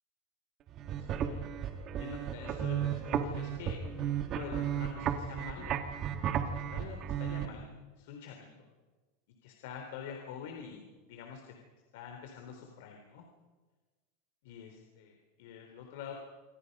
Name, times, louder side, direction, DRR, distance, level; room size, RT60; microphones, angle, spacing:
sound 1, 0.7-7.4, right 9 dB, 35° right, 1.9 m, -34 dB
voice 1, 1.0-1.4 2.0-5.8 6.4-7.7 7.9-8.5 9.4-11.4 11.9-13.2 14.4-16.1, left 7 dB, 65° left, 3 dB, 3.8 m, -46 dB
27.5 x 25.0 x 5.5 m, 1.3 s
supercardioid pair, 150°, 0 cm